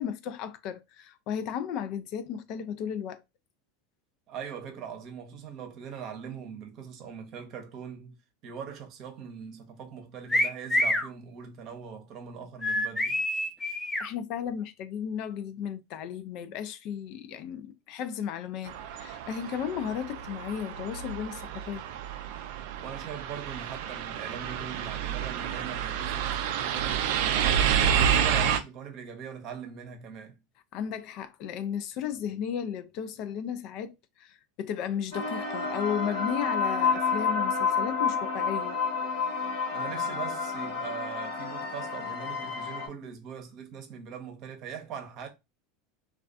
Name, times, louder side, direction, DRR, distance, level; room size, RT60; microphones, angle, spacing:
voice 1, 0.0-3.2 14.0-21.8 30.7-38.8, left 8 dB, 55° left, 0.3 m, -34 dB
voice 2, 4.3-8.2 8.4-13.2 22.8-27.8 28.1-30.4 39.7-45.3, right 7 dB, 50° right, 0.7 m, -41 dB
sound 1, 10.3-11.1 12.6-14.1, left 1 dB, 10° left, 0.6 m, -26 dB
sound 2, 18.7-28.6, right 8 dB, 65° right, 0.3 m, -29 dB
sound 3, 35.1-42.9, left 5 dB, 75° left, 1.1 m, -29 dB
2.4 x 2.3 x 2.4 m
hypercardioid pair, 85°, 0 cm